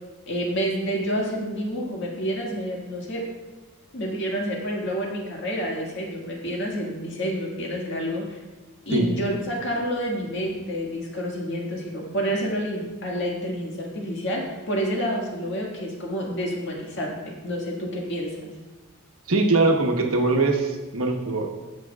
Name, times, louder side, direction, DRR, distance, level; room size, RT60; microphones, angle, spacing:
voice 1, 0.3-3.2 3.9-8.4 8.9-18.4, equal, 55° left, -2 dB, 1.8 m, -29 dB
voice 2, 19.3-21.5, right 3 dB, 70° right, 2 dB, 1.1 m, -21 dB
17.0 x 5.9 x 2.4 m, 1.2 s
head